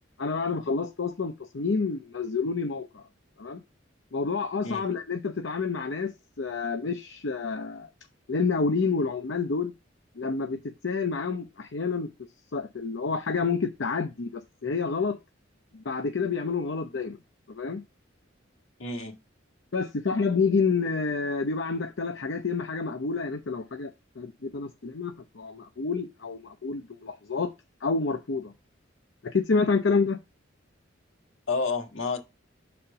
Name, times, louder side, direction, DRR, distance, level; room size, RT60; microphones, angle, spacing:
voice 1, 0.2-3.0 3.4-3.6 4.1-7.9 8.3-9.7 10.2-12.1 12.5-15.2 15.7-17.2 17.5-17.8 19.7-23.9 24.2-27.5 27.8-28.5 29.2-30.2, left 4 dB, 65° left, 0.6 m, -28 dB
voice 2, 18.8-19.1 31.5-32.2, left 4 dB, 80° left, 1.5 m, -29 dB
6.5 x 4.3 x 5.4 m
head